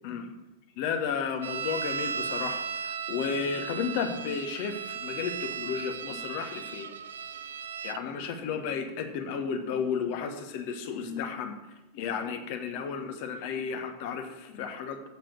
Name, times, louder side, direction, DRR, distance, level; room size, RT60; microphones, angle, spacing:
voice 1, 0.8-6.9 7.8-11.6 11.9-15.1, left 6 dB, 45° left, 7 dB, 1.1 m, -33 dB
sound 1, 1.4-8.0, right 6 dB, 65° right, 0.4 m, -36 dB
7.5 x 7.2 x 6.4 m, 1.0 s
figure-of-eight pair, 90°, 0 cm